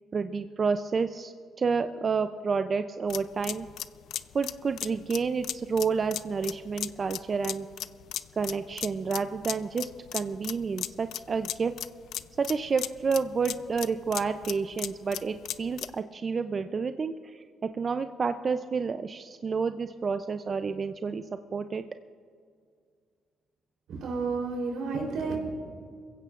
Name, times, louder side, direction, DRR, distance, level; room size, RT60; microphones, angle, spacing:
voice 1, 0.1-3.7 4.3-7.7 8.4-11.7 12.4-21.8, right 5 dB, 40° right, 9 dB, 0.4 m, -30 dB
sound 1, 3.1-16.0, left 11 dB, 80° left, 0.4 m, -37 dB
voice 2, 23.9-25.4, right 4 dB, 80° right, 0 dB, 3.5 m, -31 dB
22.5 x 16.0 x 2.5 m, 2.1 s
cardioid pair, 90°, 0 cm